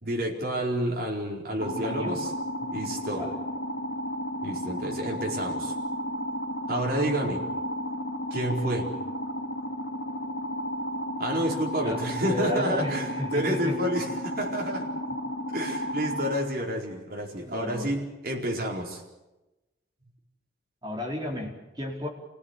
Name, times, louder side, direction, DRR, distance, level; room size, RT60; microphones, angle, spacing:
voice 1, 0.0-2.3 2.6-3.2 4.4-5.7 6.7-7.4 8.3-8.9 11.2-14.8 15.5-19.0, right 1 dB, 55° right, -2 dB, 4.6 m, -29 dB
sound 1, 1.6-16.3, equal, 70° left, 2.7 m, -33 dB
voice 2, 1.8-2.2 3.1-3.3 11.8-12.0 12.3-13.7 17.4-17.9 20.8-22.1, left 1 dB, 25° right, -1 dB, 4.6 m, -33 dB
27.5 x 17.0 x 8.3 m, 1.0 s
head